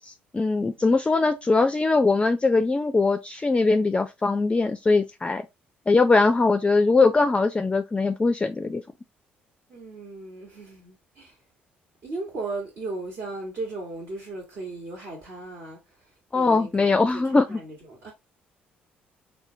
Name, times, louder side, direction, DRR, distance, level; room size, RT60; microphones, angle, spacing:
voice 1, 0.0-5.4 5.9-8.8 16.3-17.6, left 3 dB, 20° left, 0.4 m, -21 dB
voice 2, 9.7-11.4 12.0-15.8 16.3-18.1, right 3 dB, 55° right, 1.2 m, -36 dB
4.2 x 2.2 x 2.6 m
hypercardioid pair, 50°, 5 cm